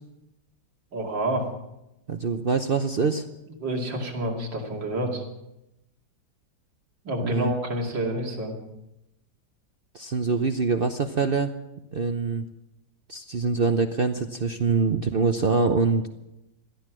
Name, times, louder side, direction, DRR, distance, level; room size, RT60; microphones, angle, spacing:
voice 1, 0.9-1.5 3.6-5.2 7.0-8.6, right 1 dB, 85° right, 1 dB, 3.2 m, -28 dB
voice 2, 2.1-3.2 7.2-7.5 9.9-11.5 11.9-12.4 13.1-16.1, right 4 dB, 55° right, 7 dB, 0.6 m, -24 dB
17.0 x 13.5 x 6.1 m, 0.92 s
omnidirectional pair, 1.9 m